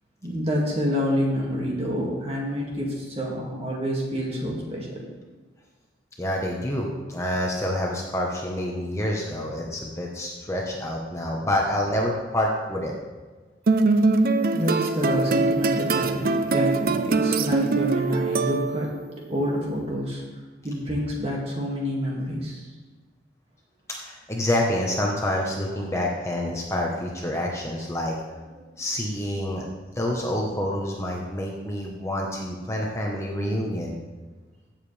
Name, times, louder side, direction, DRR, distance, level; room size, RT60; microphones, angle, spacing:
voice 1, 0.2-5.0 14.5-20.2 20.6-22.7 28.5-28.7, equal, 30° right, -2 dB, 2.1 m, -28 dB
voice 2, 6.2-12.9 24.0-28.1 28.8-29.7 30.0-34.0, left 1 dB, 15° left, -1 dB, 1.0 m, -27 dB
sound 1, 13.7-19.0, right 3 dB, 50° right, 0.5 m, -23 dB
16.0 x 7.4 x 3.3 m, 1.3 s
head